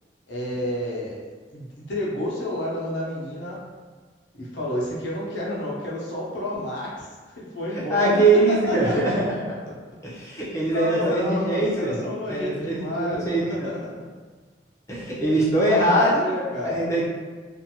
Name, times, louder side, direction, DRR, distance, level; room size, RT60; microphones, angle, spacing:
voice 1, 0.3-1.2 1.5-3.6 4.3-8.2 8.5-9.1 9.7-9.8 10.7-14.0 15.6-16.8, left 1 dB, 75° left, -6 dB, 0.8 m, -30 dB
voice 2, 7.9-9.2 10.0-12.0 12.3-13.7 14.9-16.2 16.6-17.1, right 2 dB, 15° left, -8 dB, 0.8 m, -22 dB
2.5 x 2.5 x 2.8 m, 1.4 s
head